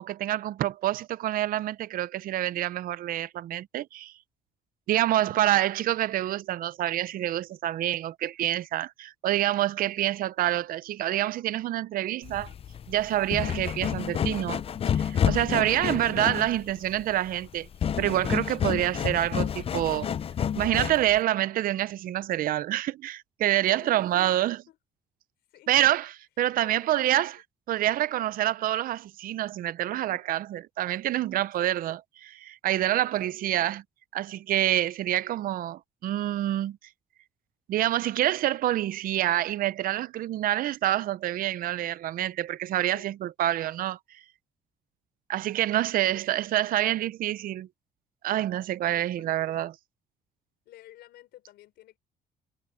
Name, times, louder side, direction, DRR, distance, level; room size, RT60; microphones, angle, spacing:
voice 1, 0.0-4.1 4.9-12.5 12.9-14.6 14.9-17.7 18.0-20.1 20.5-24.6 25.7-26.1 26.4-27.4 27.7-33.8 34.1-36.8 37.7-44.0 45.3-47.7 48.2-49.7, right 13 dB, 55° right, 0.6 m, -27 dB
sound 1, 12.2-21.2, left 8 dB, 35° left, 0.5 m, -30 dB
voice 2, 23.6-24.4 24.7-24.8 25.5-25.8 26.6-27.2 31.6-31.8 32.9-33.5 42.9-43.1 46.1-46.9 48.9-49.7 50.6-52.0, left 14 dB, 75° left, 5.1 m, -53 dB
cardioid pair, 110°, 17 cm